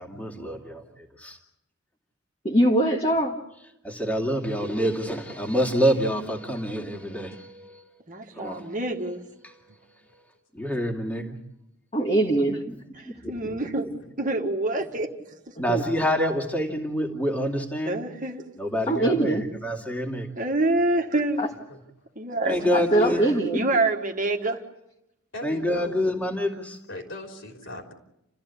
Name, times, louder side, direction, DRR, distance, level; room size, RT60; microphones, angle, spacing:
voice 1, 0.0-1.4 3.5-8.0 8.4-8.7 9.4-9.8 10.1-10.2 10.5-11.4 12.3-14.0 14.8-14.9 15.6-18.0 18.5-20.3 22.4-23.8 25.4-26.8, equal, 5° left, 1 dB, 2.4 m, -28 dB
voice 2, 2.4-3.4 11.9-12.6 15.7-15.8 18.9-19.4 21.4-21.5 22.7-23.6, right 1 dB, 25° left, -1 dB, 1.7 m, -22 dB
voice 3, 8.1-9.2 13.0-13.9 14.2-15.1 15.5-15.6 17.9-18.5 20.4-21.4 22.2-22.6 23.5-24.6, right 2 dB, 35° right, 3 dB, 1.7 m, -26 dB
voice 4, 25.3-26.0 26.9-27.9, left 1 dB, 55° left, 2 dB, 3.6 m, -39 dB
30.0 x 14.5 x 8.5 m, 0.86 s
head